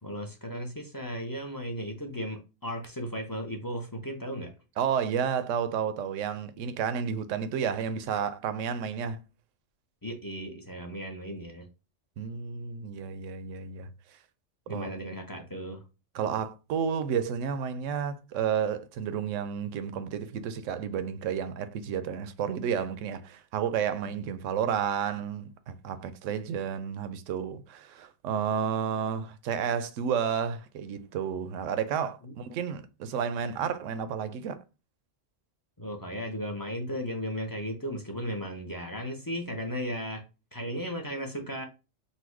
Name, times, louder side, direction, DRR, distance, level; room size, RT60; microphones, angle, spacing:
voice 1, 0.0-4.5 10.0-11.6 14.7-15.8 32.2-32.3 35.8-40.2 40.5-41.7, equal, 25° left, 0.5 m, -35 dB
voice 2, 4.8-9.2 12.2-13.9 14.7-14.9 16.1-34.6, right 7 dB, 75° right, 0.9 m, -31 dB
4.1 x 2.3 x 4.5 m
omnidirectional pair, 1.3 m